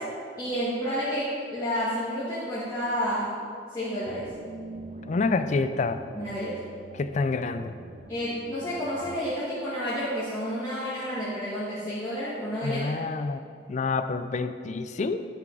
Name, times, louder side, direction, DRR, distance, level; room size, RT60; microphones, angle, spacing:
voice 1, 0.4-3.3 3.7-4.3 6.1-6.6 8.1-13.0, equal, 20° left, -12 dB, 1.9 m, -30 dB
sound 1, 4.0-9.2, right 1 dB, 35° right, 0.7 m, -44 dB
voice 2, 5.1-6.0 6.9-7.8 12.6-13.4 13.7-15.3, left 3 dB, 40° left, 11 dB, 0.4 m, -27 dB
11.0 x 6.2 x 4.7 m, 2.2 s
head